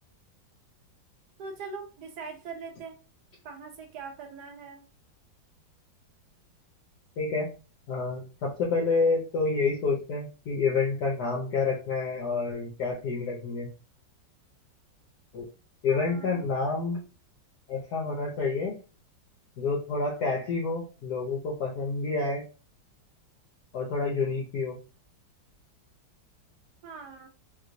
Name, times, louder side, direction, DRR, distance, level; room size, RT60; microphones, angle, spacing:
voice 1, 1.4-3.0 3.4-4.8 15.9-16.5 26.8-27.3, right 5 dB, 70° right, 3 dB, 1.1 m, -42 dB
voice 2, 7.2-7.5 7.9-13.7 15.3-15.5 15.8-17.0 17.7-18.7 19.6-22.4 23.7-24.8, left 4 dB, 65° left, -2 dB, 1.1 m, -28 dB
3.0 x 2.9 x 2.5 m, 0.34 s
omnidirectional pair, 2.1 m